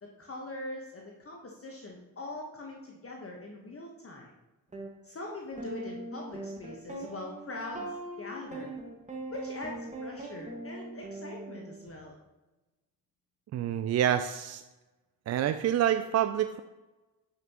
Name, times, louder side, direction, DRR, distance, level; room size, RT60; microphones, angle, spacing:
voice 1, 0.0-4.3 5.0-8.7 9.3-12.2, left 2 dB, 30° left, 0 dB, 1.3 m, -42 dB
sound 1, 4.7-4.9 5.6-11.9, right 2 dB, 15° right, 1.7 m, -41 dB
voice 2, 13.5-14.6 15.3-16.6, right 10 dB, 35° right, 10 dB, 0.4 m, -27 dB
8.8 x 5.7 x 3.0 m, 1.1 s
figure-of-eight pair, 40°, 47 cm